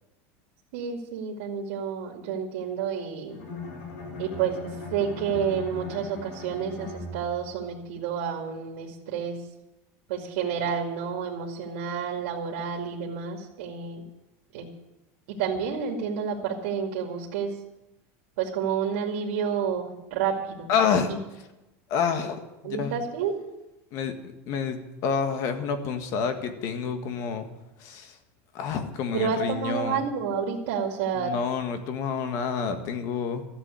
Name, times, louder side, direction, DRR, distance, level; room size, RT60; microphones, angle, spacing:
voice 1, 0.7-3.4 4.2-4.6 4.9-9.4 10.1-14.0 14.5-14.7 15.3-17.5 18.4-20.7 21.1-21.2 22.6-23.3 29.1-31.3, right 7 dB, 75° right, -1 dB, 2.4 m, -30 dB
Bowed string instrument, 3.3-7.6, left 2 dB, 80° left, 7.6 m, -39 dB
voice 2, 20.7-21.2 21.9-22.9 23.9-24.1 24.5-27.5 27.8-28.1 28.5-30.0 31.2-33.5, left 6 dB, 45° left, 7 dB, 1.7 m, -28 dB
14.0 x 8.2 x 9.8 m, 0.96 s
supercardioid pair, 165°, 8 cm